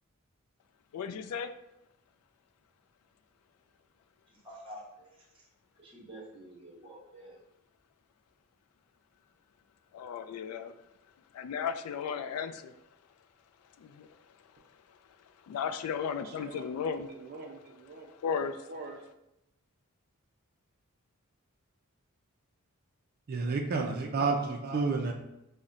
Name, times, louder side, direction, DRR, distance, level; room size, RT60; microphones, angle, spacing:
voice 1, 0.9-1.5 9.9-10.7 11.3-12.7 13.8-14.1 15.5-17.1 18.2-18.6, left 6 dB, 90° left, 0.3 m, -35 dB
voice 2, 4.4-5.5 5.8-7.4, right 1 dB, 25° right, 1.0 m, -49 dB
voice 3, 16.2-16.6 17.1-18.1 18.6-19.0 23.3-25.1, right 4 dB, 45° right, 0.4 m, -32 dB
5.4 x 2.1 x 2.4 m
head